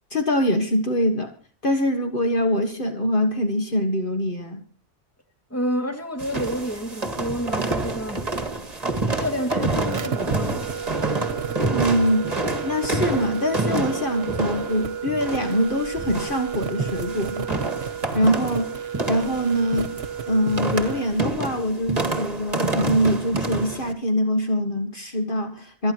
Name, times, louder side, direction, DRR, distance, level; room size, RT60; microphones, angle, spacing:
voice 1, 0.1-1.3 1.6-4.6 11.7-12.2 12.6-17.5 18.1-18.7 19.1-19.9 20.3-25.9, equal, 55° left, 1.8 m, -23 dB
voice 2, 5.5-8.2 9.1-10.6, equal, 15° left, 2.5 m, -29 dB
sound 1, 6.2-23.9, right 2 dB, 35° right, 2.0 m, -28 dB
sound 2, 9.9-21.2, right 7 dB, 70° right, 1.3 m, -32 dB
27.0 x 10.5 x 3.0 m
omnidirectional pair, 1.1 m